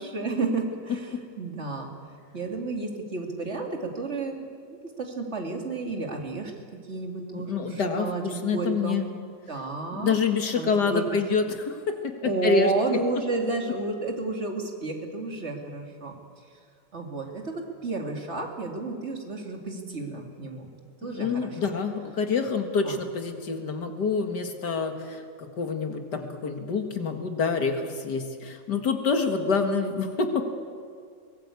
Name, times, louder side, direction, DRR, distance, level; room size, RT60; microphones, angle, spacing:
voice 1, 0.0-1.9 2.3-6.5 6.9-10.1 10.6-11.0 12.2-16.1 16.9-20.7 21.0-21.7 22.8-23.0, right 3 dB, 35° right, 2 dB, 2.7 m, -31 dB
voice 2, 7.3-9.0 9.9-13.0 21.1-30.5, left 5 dB, 65° left, 5 dB, 2.3 m, -27 dB
23.0 x 18.0 x 8.4 m, 2.2 s
omnidirectional pair, 1.9 m